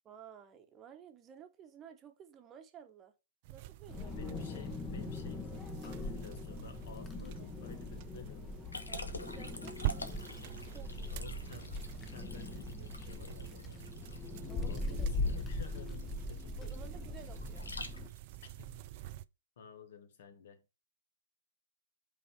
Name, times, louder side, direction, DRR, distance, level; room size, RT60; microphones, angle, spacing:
voice 1, 0.0-3.1 3.5-4.3 8.9-10.1 10.7-11.2 14.5-15.1 16.6-17.7, right 8 dB, 20° right, 1.0 m, -54 dB
sound 1, 3.4-19.3, right 15 dB, 45° right, 0.4 m, -46 dB
Wind, 3.9-18.1, left 3 dB, 15° left, 0.9 m, -41 dB
voice 2, 4.1-8.5 10.9-14.0 14.6-16.9 18.4-19.0 19.6-20.6, left 7 dB, 55° left, 1.1 m, -53 dB
Liquid, 8.7-18.4, left 2 dB, 85° left, 1.0 m, -48 dB
5.3 x 4.1 x 5.2 m
figure-of-eight pair, 120°, 0 cm